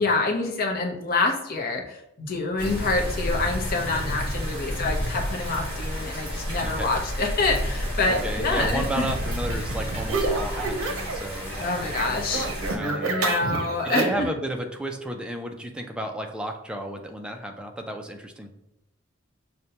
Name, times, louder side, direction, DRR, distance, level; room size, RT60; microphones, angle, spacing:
voice 1, 0.0-9.1 11.6-12.5 13.1-14.3, left 3 dB, 45° left, 1 dB, 0.8 m, -26 dB
sound 1, 2.6-12.8, equal, 25° right, 1.4 m, -31 dB
voice 2, 6.3-6.9 8.0-13.1 13.8-18.5, right 1 dB, 5° right, 3 dB, 0.4 m, -33 dB
sound 2, 8.6-11.3 11.5-14.3, right 3 dB, 85° right, 0.7 m, -29 dB
6.4 x 2.2 x 2.8 m, 0.83 s
head